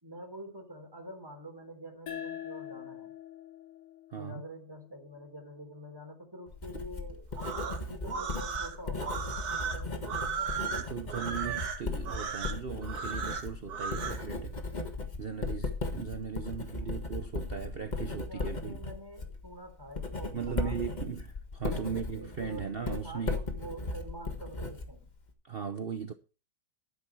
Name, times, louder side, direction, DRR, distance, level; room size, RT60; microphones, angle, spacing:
voice 1, 0.0-3.1 4.1-7.3 7.8-10.6 16.4-16.5 16.8-17.0 17.9-20.9 21.7-25.1, right 1 dB, 10° right, 3.4 m, -46 dB
sound 1, 2.1-5.3, left 10 dB, 70° left, 2.7 m, -44 dB
voice 2, 4.1-4.4 10.7-14.6 15.2-18.8 20.3-23.4 25.4-26.1, right 7 dB, 45° right, 0.8 m, -38 dB
Writing, 6.5-25.3, left 3 dB, 25° left, 1.6 m, -37 dB
sound 2, 7.3-14.2, right 6 dB, 60° right, 1.8 m, -36 dB
11.5 x 10.0 x 4.6 m
omnidirectional pair, 1.9 m